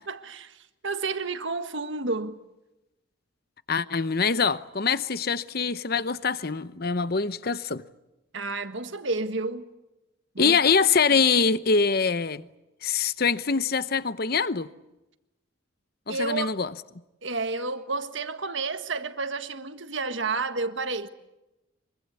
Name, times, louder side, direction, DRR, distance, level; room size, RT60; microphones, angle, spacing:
voice 1, 0.1-2.4 8.3-9.7 10.3-10.6 16.1-16.5 17.2-21.1, right 3 dB, 65° right, 1.6 m, -31 dB
voice 2, 3.7-7.8 10.4-12.5 12.8-14.7 16.1-16.7, left 5 dB, 45° left, 0.8 m, -24 dB
24.5 x 23.5 x 8.4 m
head